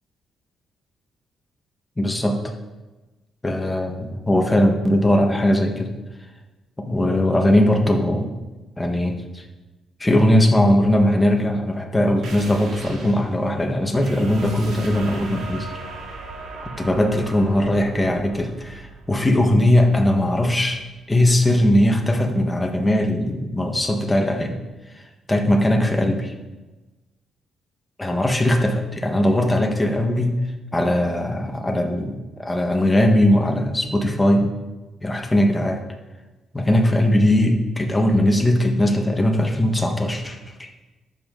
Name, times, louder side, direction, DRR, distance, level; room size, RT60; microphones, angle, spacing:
voice 1, 2.0-2.4 3.4-5.9 6.8-8.3 8.8-9.4 10.0-15.7 16.6-20.8 21.1-24.6 24.9-25.0 25.3-26.3 28.0-30.4 30.7-34.5 35.0-35.8 36.5-40.7, left 1 dB, 15° left, 3 dB, 1.6 m, -19 dB
sound 1, 12.2-21.4, right 3 dB, 70° right, 2.3 m, -38 dB
11.5 x 7.5 x 4.0 m, 1.1 s
cardioid pair, 90°, 0 cm